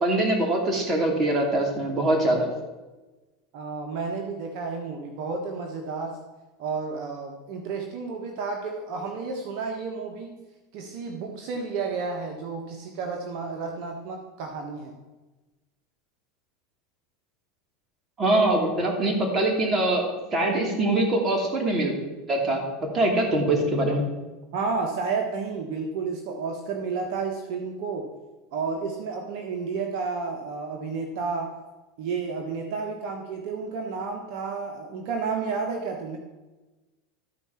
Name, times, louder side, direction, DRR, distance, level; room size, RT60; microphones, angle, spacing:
voice 1, 0.0-2.5 18.2-21.9 22.3-22.6 22.9-24.0, right 1 dB, 25° right, 0 dB, 2.9 m, -23 dB
voice 2, 3.5-6.2 6.6-10.4 10.7-14.9 24.5-28.1 28.5-31.6 32.0-36.2, right 4 dB, 60° right, 2 dB, 1.3 m, -31 dB
13.0 x 4.7 x 5.8 m, 1.1 s
supercardioid pair, 115°, 0 cm